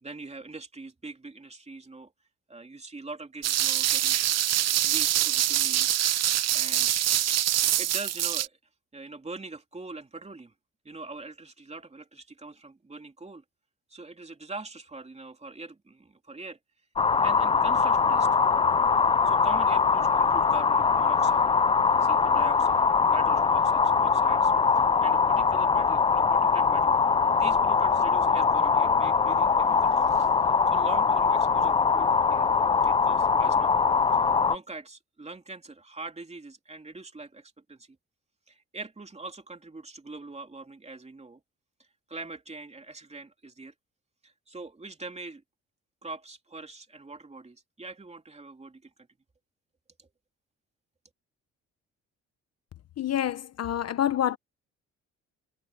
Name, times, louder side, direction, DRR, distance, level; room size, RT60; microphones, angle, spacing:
voice 1, 0.0-2.1 2.5-4.2 4.8-5.9 6.5-6.9 7.8-8.6 8.9-10.5 10.8-13.4 13.9-16.6 17.2-18.3 19.2-21.5 22.0-27.0 27.4-30.3 30.7-32.5 32.8-33.7 34.1-38.0 38.5-41.4 42.1-43.7 44.2-45.4 46.0-48.9 50.0-50.1, right 3 dB, 20° right, 2.9 m, -43 dB
sound 1, 3.4-8.5, right 12 dB, 60° right, 0.7 m, -25 dB
sound 2, 17.0-34.6, left 5 dB, 20° left, 0.4 m, -22 dB
voice 2, 53.0-54.4, left 10 dB, 55° left, 1.1 m, -27 dB
cardioid pair, 90°, 30 cm